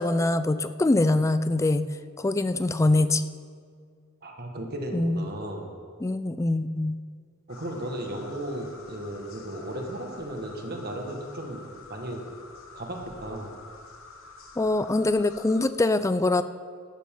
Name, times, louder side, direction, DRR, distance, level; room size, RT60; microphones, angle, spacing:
voice 1, 0.0-1.9 2.2-3.3 4.9-5.2 6.0-7.0 14.6-16.4, left 2 dB, 15° left, 12 dB, 0.3 m, -23 dB
voice 2, 4.2-5.7 7.5-12.2 12.7-13.5, right 1 dB, 45° right, 2 dB, 1.7 m, -35 dB
sound 1, 7.5-15.6, left 3 dB, 65° left, 1.2 m, -48 dB
13.5 x 12.0 x 3.8 m, 2.1 s
head